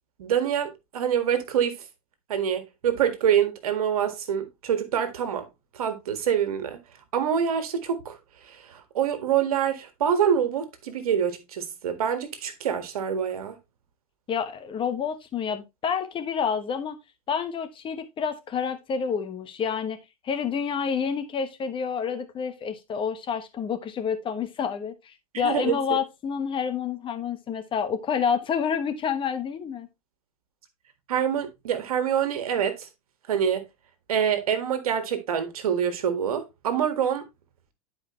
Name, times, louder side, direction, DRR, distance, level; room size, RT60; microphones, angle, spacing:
voice 1, 0.2-1.9 2.3-5.5 5.7-6.8 7.1-8.2 8.4-13.6 25.4-26.0 31.1-32.9 33.3-33.6 34.1-37.2, right 8 dB, 75° right, 1.8 m, -26 dB
voice 2, 14.3-17.0 17.3-20.0 20.2-29.9, left 7 dB, 25° left, 1.2 m, -28 dB
11.0 x 4.9 x 3.1 m
hypercardioid pair, 105°, 19 cm